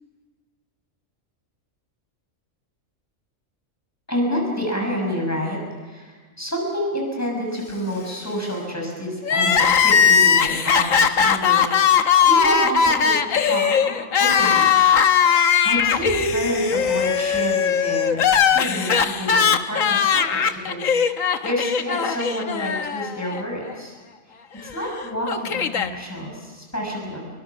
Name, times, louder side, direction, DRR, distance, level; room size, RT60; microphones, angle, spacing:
voice 1, 4.1-13.9 14.2-14.7 15.6-18.2 18.5-23.9 24.6-27.3, equal, 10° left, 0 dB, 6.6 m, -29 dB
Crying sobbing, 9.2-23.4 23.7-23.8 24.8-25.9, left 7 dB, 90° left, 1.5 m, -19 dB
27.0 x 23.5 x 6.1 m, 1.4 s
omnidirectional pair, 1.3 m